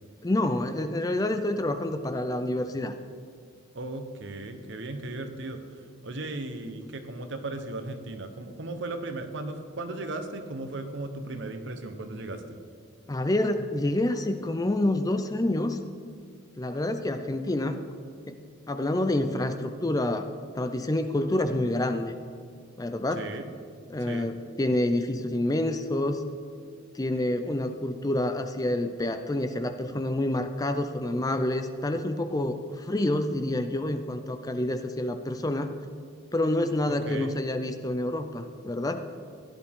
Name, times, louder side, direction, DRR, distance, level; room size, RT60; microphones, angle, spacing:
voice 1, 0.2-3.0 13.1-15.8 16.6-17.8 18.3-18.4 18.7-20.3 20.5-22.2 22.8-23.3 23.9-26.2 26.9-35.7 36.3-39.0, left 1 dB, 20° left, 8 dB, 0.4 m, -28 dB
voice 2, 3.7-5.6 6.0-12.6 23.1-23.4 24.1-24.3 37.1-37.4, right 2 dB, 60° right, 7 dB, 1.0 m, -36 dB
16.0 x 11.0 x 3.7 m, 2.2 s
head